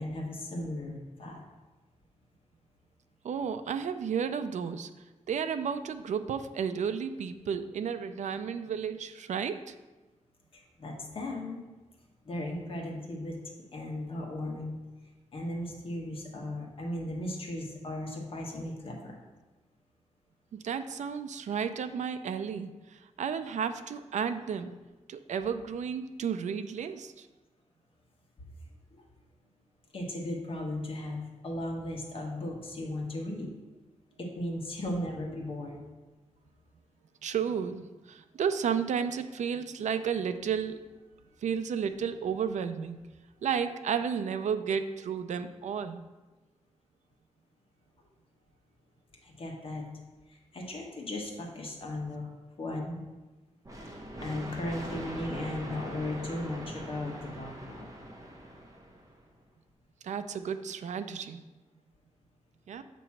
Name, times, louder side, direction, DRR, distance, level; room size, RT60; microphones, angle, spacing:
voice 1, 0.0-1.4 10.5-11.6 12.2-13.4 13.7-14.8 15.3-19.2 28.9-29.0 29.9-33.5 34.2-35.8 49.2-49.8 50.3-52.3 52.6-53.0 54.2-57.9, left 1 dB, 50° left, 0 dB, 1.2 m, -36 dB
voice 2, 3.2-4.9 5.3-9.7 20.5-24.7 25.1-27.3 37.2-40.8 41.4-43.0 43.4-46.0 60.0-61.4 62.7-62.8, right 7 dB, 75° right, 10 dB, 0.4 m, -32 dB
sound 1, 53.6-59.2, right 1 dB, 25° right, 0.9 m, -42 dB
7.4 x 3.0 x 5.8 m, 1.2 s
wide cardioid pair, 170°, 12 cm